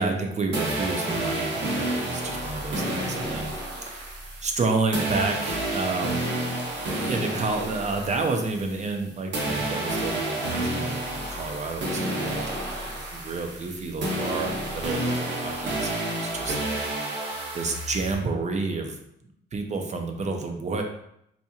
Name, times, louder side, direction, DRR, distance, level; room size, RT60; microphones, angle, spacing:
voice 1, 0.0-3.5 3.9-6.2 6.8-16.8 17.5-19.0 19.5-20.8, right 3 dB, 35° right, 4 dB, 0.6 m, -30 dB
sound 1, 0.5-9.0 9.3-18.1, right 1 dB, 65° right, 1.0 m, -30 dB
4.0 x 2.8 x 2.4 m, 0.75 s
cardioid pair, 90°, 20 cm